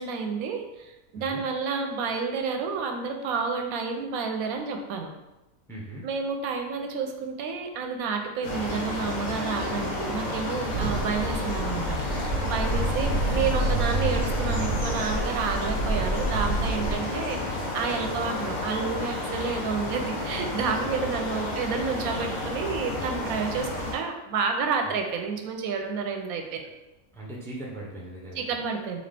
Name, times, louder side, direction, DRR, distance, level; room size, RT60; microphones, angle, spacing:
voice 1, 0.0-5.1 6.0-26.7 28.3-29.0, right 5 dB, 90° right, 4 dB, 1.0 m, -30 dB
voice 2, 5.7-6.1 10.7-11.0 12.5-12.9 16.9-17.1 18.1-18.2 20.0-20.1 20.6-20.7 21.0-21.1 27.1-28.6, right 1 dB, 5° left, -3 dB, 0.4 m, -40 dB
sound 1, 8.4-23.9, left 2 dB, 40° left, 0.8 m, -31 dB
Ocean, 10.7-17.0, right 2 dB, 65° right, 0.8 m, -28 dB
3.9 x 2.9 x 3.3 m, 1.0 s
omnidirectional pair, 1.5 m